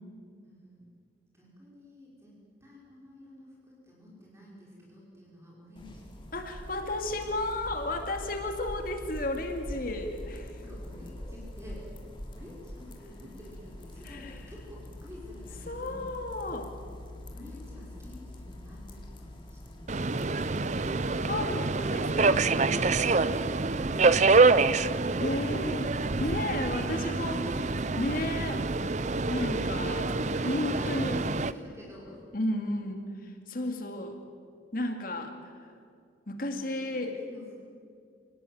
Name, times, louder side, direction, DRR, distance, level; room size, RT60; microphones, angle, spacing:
voice 1, 0.4-0.9 1.3-6.1 10.6-11.9 12.3-16.0 17.3-21.1 21.4-21.5 21.8-23.2 23.6-24.4 27.4-27.7 29.4-32.2 36.8-37.5, left 2 dB, 15° right, -4 dB, 5.4 m, -48 dB
sound 1, 5.8-21.3, left 1 dB, 25° left, 2.7 m, -44 dB
voice 2, 6.3-10.6 14.0-14.3 15.7-16.7 21.3-22.4 24.6-27.4 28.0-28.7 29.3-30.2 30.4-31.2 32.3-34.2 34.7-35.7 36.3-37.2, left 1 dB, 50° left, 4 dB, 2.4 m, -33 dB
Subway metro underground, 19.9-31.5, right 3 dB, 40° right, 0.6 m, -26 dB
26.5 x 18.5 x 9.4 m, 2.3 s
head